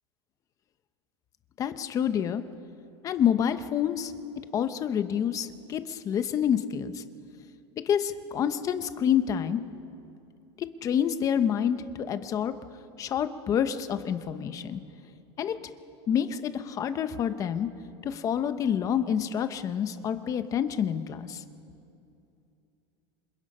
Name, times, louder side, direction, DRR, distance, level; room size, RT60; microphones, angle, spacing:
voice 1, 1.6-2.4 3.0-4.1 4.5-7.0 7.9-9.6 10.8-12.5 13.0-14.8 15.4-15.5 16.1-17.7 18.0-21.4, left 8 dB, 25° left, 10 dB, 0.9 m, -28 dB
27.0 x 26.0 x 5.5 m, 2.7 s
supercardioid pair, 170°, 14 cm